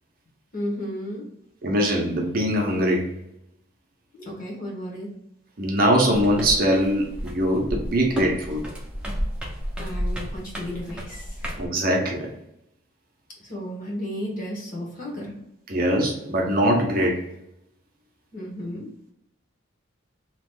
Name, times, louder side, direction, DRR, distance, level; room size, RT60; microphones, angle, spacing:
voice 1, 0.5-1.3 4.1-5.1 9.8-11.5 13.4-15.4 18.3-18.9, equal, 40° left, -3 dB, 1.1 m, -33 dB
voice 2, 1.6-3.1 5.6-8.6 11.6-12.3 15.7-17.2, equal, 45° right, 1 dB, 0.6 m, -22 dB
sound 1, 6.1-11.7, equal, 5° right, 0.6 m, -32 dB
2.9 x 2.4 x 3.5 m, 0.80 s
head